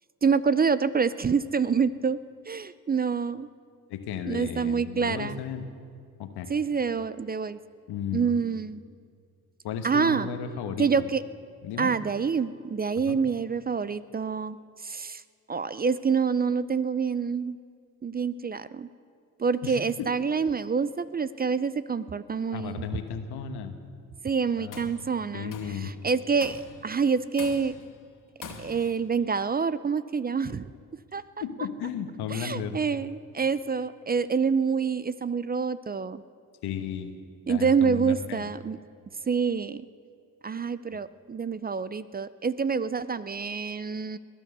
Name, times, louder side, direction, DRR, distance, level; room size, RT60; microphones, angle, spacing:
voice 1, 0.2-2.2 2.5-3.5 4.3-5.4 6.5-7.6 8.1-8.8 9.8-10.3 10.8-11.2 11.8-14.6 14.8-15.2 15.5-17.6 18.0-18.9 19.4-22.9 24.2-25.5 25.8-27.7 28.6-30.7 31.1-31.2 32.3-36.2 37.5-38.8 39.3-39.9 40.4-44.2, right 5 dB, 25° right, 16 dB, 0.4 m, -27 dB
voice 2, 3.9-5.7 6.2-6.5 7.9-8.3 9.6-10.9 11.6-11.9 13.1-13.2 19.6-20.1 22.5-23.8 24.6-24.9 25.3-25.9 31.4-32.8 36.6-37.1 37.5-38.5, left 7 dB, 85° left, 7 dB, 1.3 m, -34 dB
Tools, 24.5-25.0 25.5-25.9 26.4-26.8 27.4-27.9 28.4-29.0, left 5 dB, 55° left, 2.1 m, -43 dB
20.5 x 10.5 x 6.7 m, 2.2 s
supercardioid pair, 65°, 38 cm